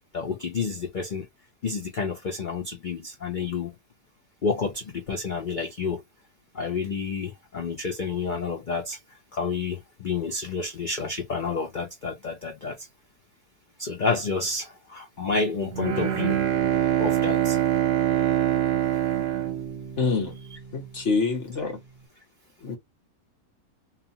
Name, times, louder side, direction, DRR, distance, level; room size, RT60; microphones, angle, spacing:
voice 1, 0.1-1.3 1.6-3.7 4.4-6.0 6.5-9.0 9.3-12.8 13.8-16.4 17.0-17.6, left 4 dB, 85° left, 0.4 m, -29 dB
Bowed string instrument, 15.7-20.6, right 12 dB, 60° right, 0.9 m, -24 dB
voice 2, 20.0-20.4 20.7-21.8 22.6-22.8, left 4 dB, 50° left, 1.2 m, -26 dB
2.7 x 2.4 x 2.7 m
omnidirectional pair, 1.8 m